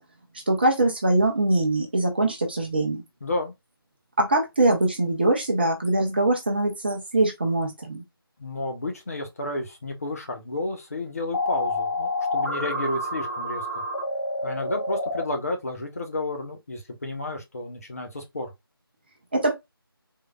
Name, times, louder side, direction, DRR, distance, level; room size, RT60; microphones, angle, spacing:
voice 1, 0.5-3.0 4.2-8.0 19.3-19.5, right 2 dB, 25° right, 0.7 m, -22 dB
voice 2, 3.2-3.5 8.4-13.8 14.4-18.5, left 2 dB, 40° left, 0.8 m, -31 dB
sound 1, 11.3-15.2, left 1 dB, 80° left, 2.0 m, -28 dB
3.7 x 3.2 x 2.3 m
figure-of-eight pair, 160°, 13 cm